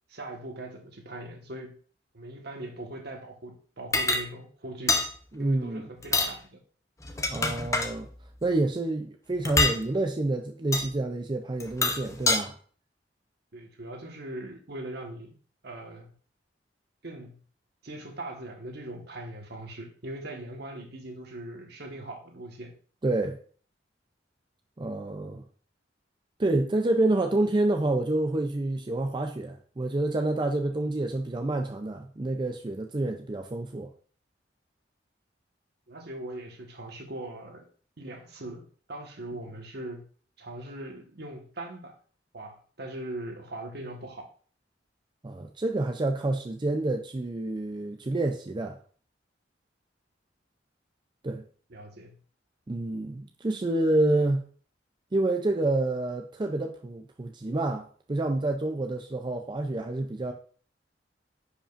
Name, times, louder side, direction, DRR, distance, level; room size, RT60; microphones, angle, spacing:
voice 1, 0.1-1.8 2.1-5.0 5.4-6.6 13.5-15.3 15.6-16.1 17.0-17.4 17.8-22.7 35.9-37.6 38.0-40.1 40.4-42.0 42.3-44.2 51.7-52.2, right 1 dB, 65° right, 1.4 m, -40 dB
sound 1, 3.9-4.2 4.9-5.1 6.0-6.3 7.0-7.9 9.5-9.8 10.7-10.9 11.6-12.4, left 3 dB, 15° left, 0.7 m, -25 dB
voice 2, 5.3-5.9 7.3-8.1 8.4-12.6 23.0-23.4 24.8-25.4 26.4-33.9 45.2-48.8 51.2-51.4 52.7-54.5 55.1-60.3, right 2 dB, 25° right, 0.5 m, -28 dB
10.0 x 5.1 x 2.5 m
head